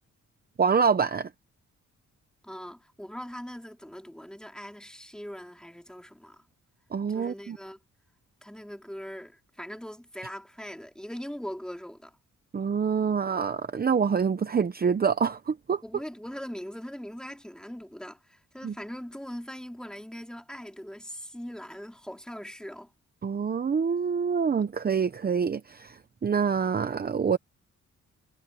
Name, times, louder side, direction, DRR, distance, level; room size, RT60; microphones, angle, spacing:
voice 1, 0.6-1.3 6.9-7.6 12.5-15.8 18.6-18.7 23.2-27.4, right 6 dB, 30° right, 0.8 m, -26 dB
voice 2, 2.4-6.4 7.1-7.8 8.4-12.2 15.8-22.9, equal, 5° left, 2.5 m, -41 dB
wide cardioid pair, 140°, 30 cm